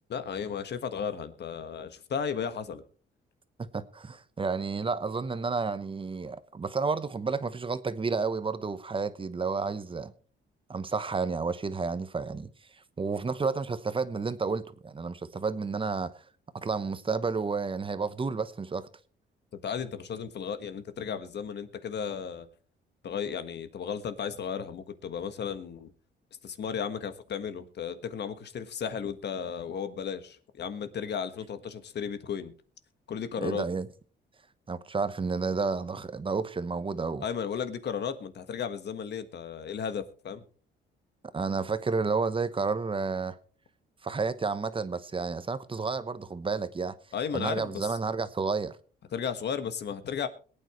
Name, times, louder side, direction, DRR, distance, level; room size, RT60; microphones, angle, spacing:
voice 1, 0.1-2.8 19.6-22.5 23.0-25.9 26.4-32.5 33.1-33.6 37.2-40.4 47.1-48.0 49.1-50.3, left 7 dB, 60° left, 10 dB, 1.5 m, -34 dB
voice 2, 3.7-10.1 10.7-12.5 13.0-16.1 16.5-18.9 33.4-33.9 34.7-37.2 41.3-43.4 44.0-47.0 47.3-48.8, right 4 dB, 25° right, 13 dB, 1.0 m, -31 dB
22.0 x 9.0 x 3.1 m, 0.39 s
cardioid pair, 90°, 20 cm